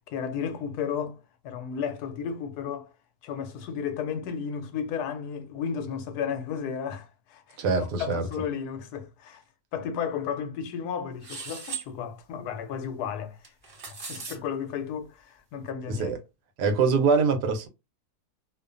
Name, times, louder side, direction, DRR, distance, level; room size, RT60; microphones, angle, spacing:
voice 1, 0.1-2.9 3.2-9.4 9.7-13.5 13.9-16.1, left 7 dB, 75° left, 1.1 m, -33 dB
voice 2, 7.6-8.2 15.9-16.2 16.6-17.7, right 4 dB, 90° right, 1.2 m, -24 dB
sound 1, 11.2-11.9 13.4-14.4, right 5 dB, 50° right, 0.7 m, -37 dB
2.7 x 2.1 x 2.4 m
omnidirectional pair, 1.7 m